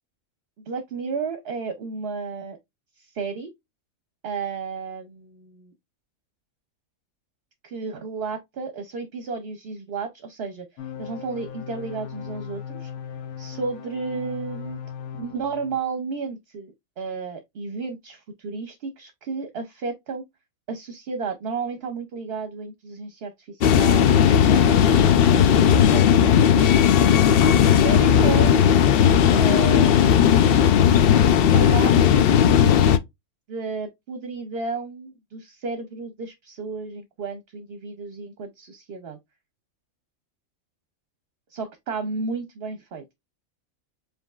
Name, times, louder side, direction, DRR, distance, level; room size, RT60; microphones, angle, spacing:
voice 1, 0.7-2.6 3.0-3.5 4.2-5.7 7.6-10.7 11.0-12.9 13.4-14.8 15.1-20.2 20.7-24.1 24.5-26.8 27.2-27.4 27.8-28.5 29.3-30.0 31.5-32.8 33.5-39.2 41.5-43.0, right 4 dB, 55° right, 0.8 m, -33 dB
sound 1, 10.8-15.8, left 8 dB, 90° left, 1.2 m, -37 dB
sound 2, 23.6-33.0, left 8 dB, 70° left, 0.5 m, -16 dB
5.0 x 3.2 x 2.3 m
omnidirectional pair, 1.5 m